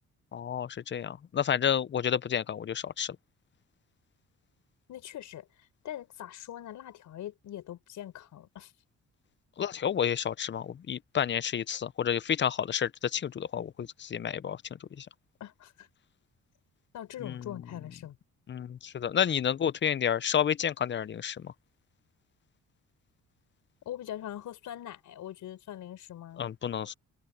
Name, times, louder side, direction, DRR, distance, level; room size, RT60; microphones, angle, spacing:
voice 1, 0.3-3.2 9.6-14.6 15.0-15.1 17.2-17.4 18.5-21.5 26.4-26.9, left 8 dB, 40° left, 0.7 m, -30 dB
voice 2, 4.9-8.7 15.4-15.9 16.9-18.2 23.9-26.5, left 12 dB, 75° left, 5.2 m, -42 dB
cardioid pair, 90°, 30 cm